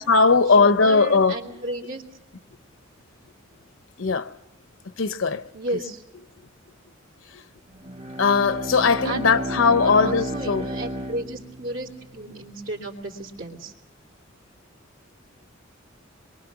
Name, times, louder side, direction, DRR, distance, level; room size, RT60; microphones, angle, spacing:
voice 1, 0.0-1.4 4.0-4.4 4.8-5.8 6.4-6.5 7.3-7.5 8.2-10.7, left 4 dB, 80° left, 0.8 m, -20 dB
voice 2, 0.6-2.0 5.5-6.0 9.0-11.9 12.1-13.7, right 2 dB, 90° right, 2.9 m, -33 dB
Bowed string instrument, 7.8-12.1, equal, 35° right, 0.8 m, -33 dB
26.0 x 23.0 x 6.0 m
head